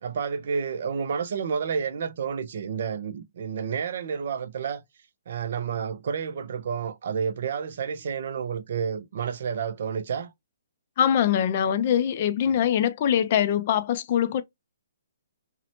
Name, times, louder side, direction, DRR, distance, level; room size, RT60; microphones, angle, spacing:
voice 1, 0.0-4.8 5.3-10.3 12.4-12.6, right 6 dB, 55° right, 0.4 m, -30 dB
voice 2, 11.0-14.4, left 9 dB, 40° left, 0.3 m, -23 dB
2.7 x 2.0 x 2.7 m
hypercardioid pair, 160°, 0 cm